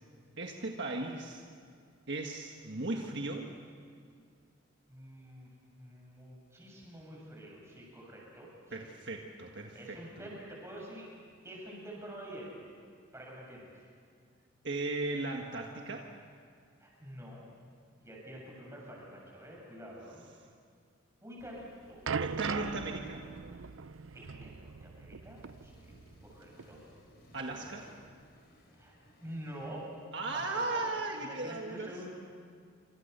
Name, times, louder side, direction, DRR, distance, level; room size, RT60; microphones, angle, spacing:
voice 1, 0.4-1.4 2.1-3.5 8.7-10.3 14.6-16.1 22.2-23.2 27.3-27.8 30.1-32.1, right 2 dB, 55° right, 1 dB, 1.6 m, -37 dB
voice 2, 4.9-5.5 5.8-9.0 9.7-11.1 11.4-12.6 13.1-13.7 16.8-17.5 18.0-20.3 21.2-22.0 24.1-26.8 27.4-27.7 28.7-28.9 29.2-29.9 30.3-30.9 31.2-32.1, equal, 15° right, -3 dB, 7.5 m, -47 dB
sound 1, 21.5-26.3 26.6-26.8 27.5-27.6, right 5 dB, 75° right, 0.6 m, -40 dB
Accelerating revving vroom, 25.2-30.5, equal, 50° left, 4.9 m, -61 dB
27.5 x 26.0 x 6.8 m, 2.2 s
head